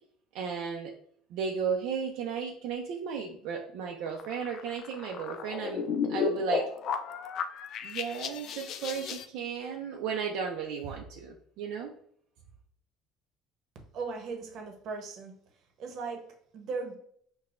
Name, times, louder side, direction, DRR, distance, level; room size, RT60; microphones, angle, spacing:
voice 1, 0.3-0.9 1.3-6.7 7.8-11.9, right 6 dB, 75° right, 1 dB, 0.5 m, -34 dB
sound 1, 4.1-9.3, left 6 dB, 55° left, 0.4 m, -33 dB
voice 2, 13.9-15.4 15.8-16.3 16.5-17.0, right 4 dB, 60° right, 4 dB, 0.9 m, -37 dB
5.9 x 2.2 x 2.5 m, 0.65 s
cardioid pair, 110°, 0 cm